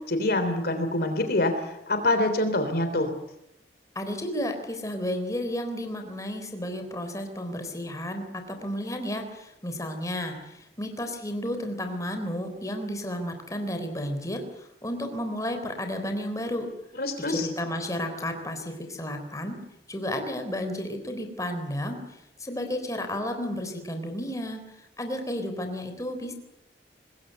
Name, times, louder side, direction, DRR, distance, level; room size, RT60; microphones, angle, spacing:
voice 1, 0.1-3.1 17.0-17.5, left 2 dB, 60° left, 8 dB, 3.4 m, -25 dB
voice 2, 4.0-16.7 17.2-19.6 19.9-22.0 22.4-24.6 25.0-26.3, left 1 dB, 20° left, 6 dB, 3.8 m, -32 dB
25.5 x 20.5 x 8.1 m, 0.84 s
head